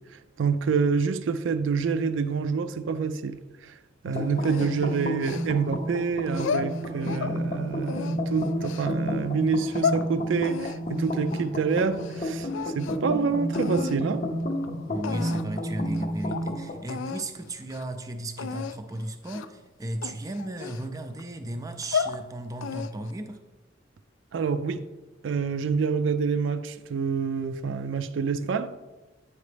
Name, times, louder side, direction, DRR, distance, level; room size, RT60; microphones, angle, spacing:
voice 1, 0.4-3.7 4.0-14.2 24.3-24.8 25.2-28.7, right 5 dB, 80° right, 0.4 m, -27 dB
sound 1, 4.1-16.8, equal, 40° left, 0.6 m, -31 dB
sound 2, 4.4-5.8 6.3-7.4 7.8-8.9 9.5-10.0 10.4-12.2 12.5-13.1 13.5-14.0 14.6-14.7 15.0-15.6 15.9-16.0 16.3-16.5 16.9-17.3 17.6-17.8 18.4-18.8 19.3-19.6 20.0-21.2 21.7-22.2 22.6-23.1, left 6 dB, 80° left, 0.3 m, -33 dB
voice 2, 14.9-23.4, right 1 dB, 20° right, 0.4 m, -35 dB
8.3 x 5.0 x 3.3 m
head